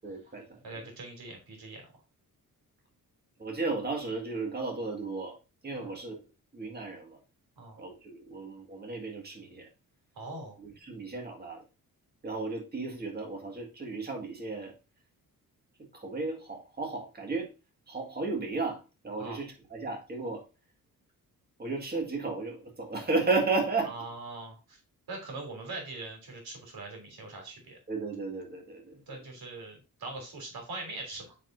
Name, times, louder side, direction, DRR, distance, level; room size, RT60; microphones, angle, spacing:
voice 1, 0.0-0.9 3.4-5.4 5.6-6.2 6.5-7.2 7.8-9.7 10.6-11.6 12.2-14.7 15.9-17.5 17.9-20.4 21.6-23.9 27.9-29.2, right 3 dB, 25° right, 1 dB, 2.0 m, -34 dB
voice 2, 0.6-1.9 5.7-6.0 7.6-7.8 10.1-10.6 19.2-19.4 23.8-24.8 25.1-27.8 29.1-31.4, right 2 dB, 85° right, 2 dB, 3.3 m, -42 dB
8.9 x 5.1 x 2.6 m, 0.30 s
wide cardioid pair, 135°, 35 cm